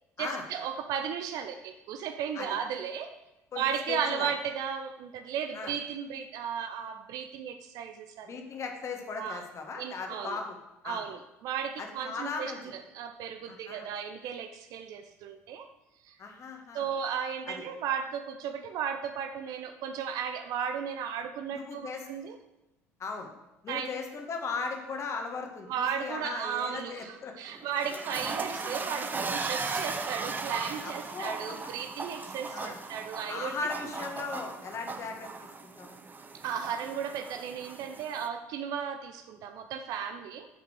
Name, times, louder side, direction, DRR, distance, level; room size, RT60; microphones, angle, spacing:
voice 1, 0.2-3.1 3.6-8.3 9.2-9.4 9.8-10.4 10.8-15.7 16.0-16.1 16.7-22.4 23.7-23.9 25.7-33.7 36.4-40.5, right 7 dB, 50° right, 8 dB, 0.6 m, -35 dB
voice 2, 3.5-4.3 5.5-5.7 8.3-10.6 10.8-11.0 11.8-12.6 13.5-13.9 16.2-16.9 17.5-17.6 21.5-22.1 23.0-23.3 23.6-27.3 28.1-28.2 30.8-31.6 32.5-32.8 33.3-35.9, left 4 dB, 35° left, 3 dB, 1.6 m, -38 dB
sound 1, 27.5-38.3, right 4 dB, 25° right, 0.8 m, -37 dB
8.2 x 5.8 x 6.4 m, 0.95 s
figure-of-eight pair, 60°, 8 cm